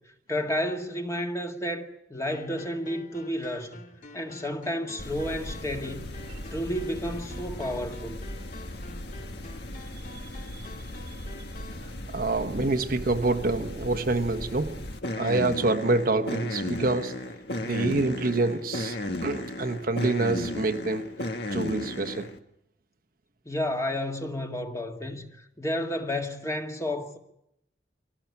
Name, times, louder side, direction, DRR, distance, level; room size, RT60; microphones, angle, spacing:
voice 1, 0.3-3.8 4.1-6.2 6.5-8.3 23.5-27.2, left 1 dB, 15° left, 2.0 m, -31 dB
sound 1, 2.3-11.9, left 2 dB, 45° left, 1.9 m, -48 dB
sound 2, 5.0-22.4, left 1 dB, 65° left, 1.6 m, -36 dB
voice 2, 11.8-17.3 17.6-21.2 21.5-22.3, right 2 dB, 50° right, 1.1 m, -27 dB
25.0 x 17.5 x 9.6 m
head